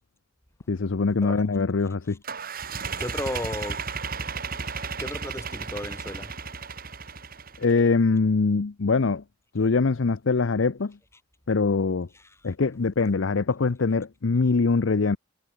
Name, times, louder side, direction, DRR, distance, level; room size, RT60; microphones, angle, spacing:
voice 1, 0.7-2.2 7.6-9.2 9.5-11.0 11.5-12.1 12.4-15.2, left 4 dB, 75° left, 0.7 m, -23 dB
sound 1, 2.2-7.8, right 5 dB, 50° right, 3.5 m, -34 dB
voice 2, 3.0-3.8 5.0-6.3 12.1-12.4, left 1 dB, 15° left, 4.3 m, -34 dB
head